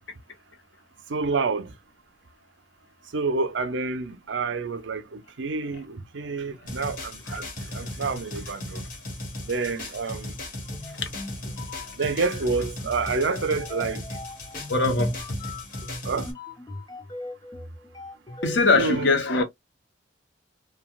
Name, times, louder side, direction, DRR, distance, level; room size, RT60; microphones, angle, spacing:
voice 1, 1.1-1.7 3.1-8.8 9.4-10.3 12.0-14.0 16.0-16.3 18.8-19.1, right 4 dB, 85° right, 0.6 m, -28 dB
sound 1, 6.7-16.3, left 1 dB, 50° left, 1.3 m, -37 dB
sound 2, 10.7-18.6, left 2 dB, 25° left, 0.7 m, -40 dB
voice 2, 14.7-15.2 18.4-19.4, left 3 dB, 80° left, 1.1 m, -21 dB
3.3 x 2.3 x 2.4 m
head